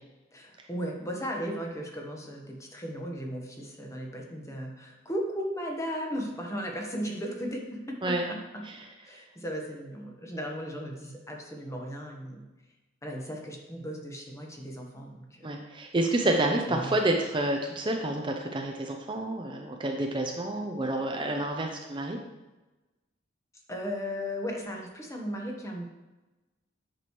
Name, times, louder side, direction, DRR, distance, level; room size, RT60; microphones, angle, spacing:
voice 1, 0.3-8.6 9.0-12.4 13.0-15.5 16.7-17.0 23.7-25.8, equal, 15° left, 0 dB, 1.1 m, -36 dB
voice 2, 15.4-22.2, right 1 dB, 25° right, 2 dB, 0.6 m, -29 dB
8.8 x 6.1 x 3.1 m, 1.1 s
head